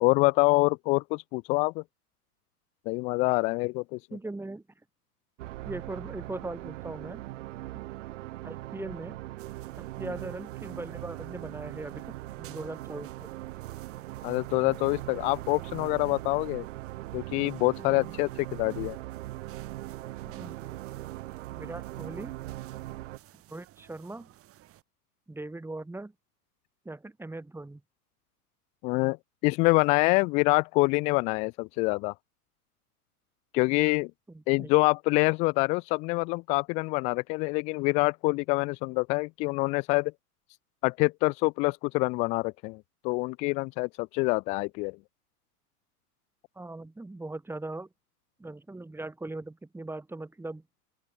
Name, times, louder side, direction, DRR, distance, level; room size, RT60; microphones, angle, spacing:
voice 1, 0.0-1.8 2.9-4.0 14.2-16.7 17.1-19.0 28.8-29.2 29.4-32.1 33.5-34.1 34.5-40.1 40.8-45.0, left 27 dB, 15° left, 0.4 m, -26 dB
voice 2, 4.1-4.6 5.6-7.2 8.4-9.2 9.8-13.3 17.9-18.1 20.2-20.7 21.5-22.4 23.5-24.3 25.3-26.1 26.9-27.8 34.3-34.7 46.6-47.9 48.4-50.6, right 2 dB, 5° right, 3.6 m, -40 dB
sound 1, 5.4-23.2, right 17 dB, 50° right, 4.8 m, -40 dB
sound 2, 9.4-24.8, right 15 dB, 30° right, 4.1 m, -57 dB
open air
figure-of-eight pair, 100°, 46 cm